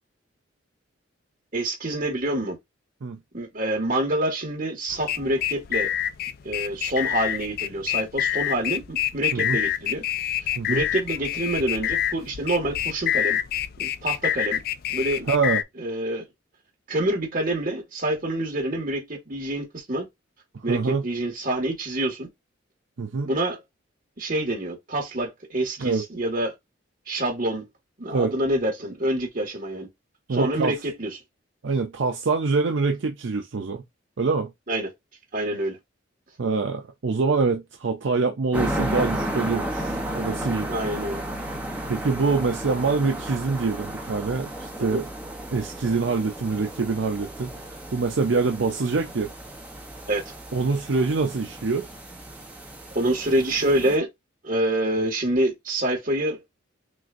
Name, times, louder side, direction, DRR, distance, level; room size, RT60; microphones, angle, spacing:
voice 1, 1.5-2.6 3.3-5.9 6.4-10.0 10.4-13.4 13.8-14.6 14.9-15.3 15.8-16.2 16.9-20.1 20.6-22.3 23.2-23.6 24.2-26.5 27.1-27.6 28.0-29.9 30.3-31.1 34.7-34.9 35.3-35.8 40.7-41.2 44.8-45.0 50.1-50.3 53.0-54.1 54.4-56.4, right 1 dB, 45° right, 1.8 m, -26 dB
sound 1, 4.9-15.6, left 11 dB, 50° left, 0.3 m, -27 dB
voice 2, 15.3-15.6 20.7-21.1 23.0-23.3 25.8-26.0 28.1-28.3 30.3-30.8 31.6-33.8 34.2-34.5 36.4-40.7 41.9-45.1 45.5-47.6 47.9-49.3 50.5-51.9, right 4 dB, 70° right, 0.6 m, -25 dB
sound 2, 38.5-54.0, right 1 dB, 10° right, 0.9 m, -33 dB
6.2 x 2.5 x 2.5 m
head